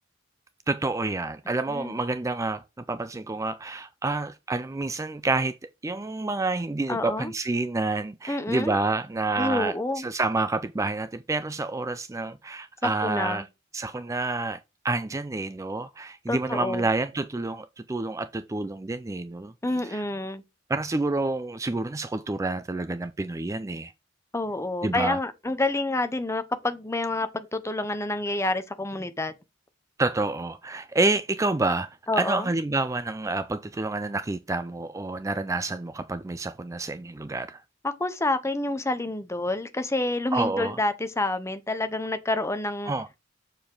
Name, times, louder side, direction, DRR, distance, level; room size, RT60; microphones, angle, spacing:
voice 1, 0.7-5.6 5.8-13.5 13.7-14.6 14.8-19.5 19.9-20.0 20.7-23.9 24.8-25.2 30.0-37.6 40.3-40.8 42.9-43.1, right 2 dB, 15° right, 0.4 m, -28 dB
voice 2, 6.9-7.3 8.3-8.8 9.4-10.0 13.0-13.4 16.3-16.8 19.6-20.4 24.3-29.3 32.1-32.5 37.8-42.9, left 2 dB, 15° left, 0.8 m, -28 dB
7.0 x 6.7 x 3.8 m
head